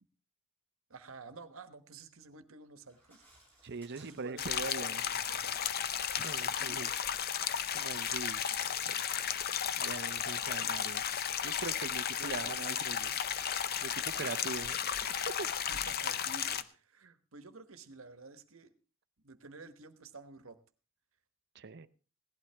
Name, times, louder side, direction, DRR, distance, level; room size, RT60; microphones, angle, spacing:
voice 1, 0.9-3.2 3.9-5.6 6.5-6.9 8.5-9.2 12.1-12.8 14.2-14.6 15.7-18.7 19.2-20.6, right 3 dB, 80° right, 10 dB, 1.2 m, -52 dB
Crow, 2.9-16.0, right 1 dB, 10° left, 6.6 m, -61 dB
voice 2, 3.6-5.0 6.1-6.9 7.7-8.4 8.9-9.0 9.8-11.0 11.4-13.2 13.8-14.8 15.1-15.5 21.5-21.9, right 4 dB, 55° right, 14 dB, 0.7 m, -42 dB
sound 1, 4.4-16.6, left 8 dB, 50° left, 0.6 m, -34 dB
17.0 x 11.5 x 3.4 m, 0.35 s
head